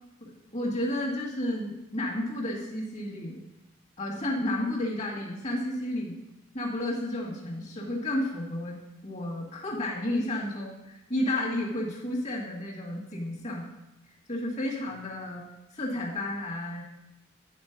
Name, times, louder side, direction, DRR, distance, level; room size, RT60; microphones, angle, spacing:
voice 1, 0.2-3.4 4.0-6.2 6.5-13.7 14.0-15.4 15.7-16.8, left 1 dB, 35° left, -3 dB, 2.0 m, -32 dB
10.5 x 4.5 x 5.9 m, 0.91 s
head